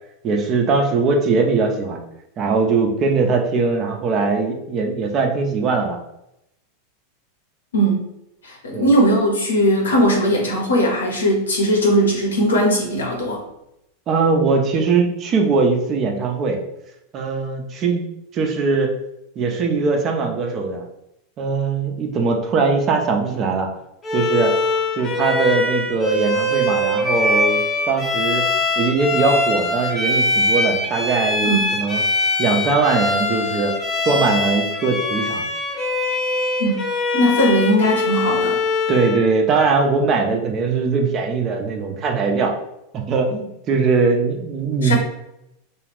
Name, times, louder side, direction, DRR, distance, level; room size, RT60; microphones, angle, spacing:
voice 1, 0.2-2.0 2.4-6.0 8.7-8.9 14.1-16.6 17.1-18.1 18.3-18.9 19.4-20.9 21.4-23.7 24.1-24.6 24.9-28.4 28.8-32.0 32.4-33.7 34.1-35.4 38.9-42.6 42.9-44.9, right 4 dB, 40° right, 2 dB, 0.6 m, -20 dB
voice 2, 8.4-13.4 31.4-31.6 36.6-36.8 37.1-38.6 44.8-44.9, equal, 85° left, -1 dB, 0.9 m, -18 dB
Bowed string instrument, 24.0-39.3, left 2 dB, 20° left, 0.8 m, -22 dB
2.4 x 2.3 x 3.4 m, 0.83 s
hypercardioid pair, 95°, 0 cm